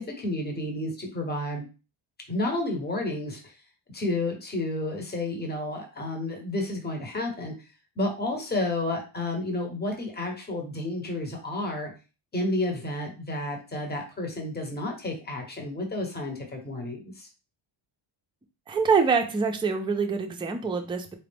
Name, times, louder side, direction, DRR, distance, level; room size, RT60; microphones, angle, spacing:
voice 1, 0.0-1.6 2.3-3.5 3.9-7.5 8.0-11.9 12.3-17.3, left 2 dB, 20° left, 2 dB, 0.9 m, -31 dB
voice 2, 18.7-21.1, right 5 dB, 10° right, 3 dB, 0.4 m, -25 dB
4.1 x 2.4 x 3.4 m, 0.31 s
wide cardioid pair, 135°, 48 cm